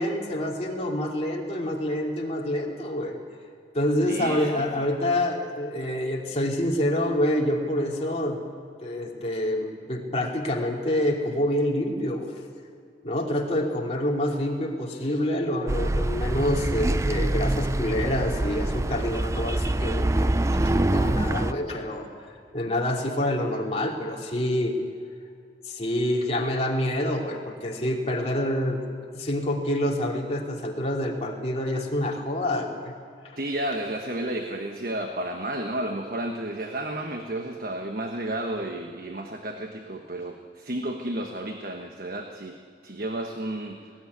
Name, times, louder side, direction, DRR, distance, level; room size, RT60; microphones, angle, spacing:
voice 1, 0.0-3.2 3.7-8.4 8.8-12.3 13.0-20.3 20.6-22.1 22.5-24.8 25.7-28.8 29.1-32.9, left 1 dB, 35° left, -1 dB, 2.9 m, -27 dB
voice 2, 4.0-4.9 33.4-42.6 42.8-43.8, right 1 dB, 55° right, 4 dB, 1.3 m, -32 dB
sound 1, 15.7-21.5, right 1 dB, 15° right, 0.4 m, -25 dB
19.5 x 17.0 x 9.6 m, 2.3 s
head